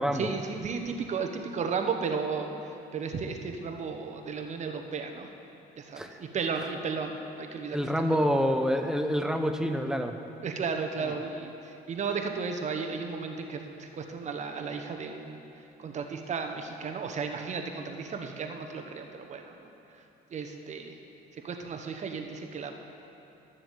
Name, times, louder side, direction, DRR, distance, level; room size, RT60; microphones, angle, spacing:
voice 1, 0.1-2.5 2.9-5.3 5.8-7.8 8.1-8.2 10.4-15.4 15.8-19.5 20.3-20.9 21.4-22.7, right 5 dB, 45° right, 4 dB, 1.0 m, -34 dB
voice 2, 7.7-10.2, equal, 5° right, 5 dB, 0.8 m, -27 dB
12.0 x 6.9 x 7.4 m, 2.9 s
cardioid pair, 110°, 17 cm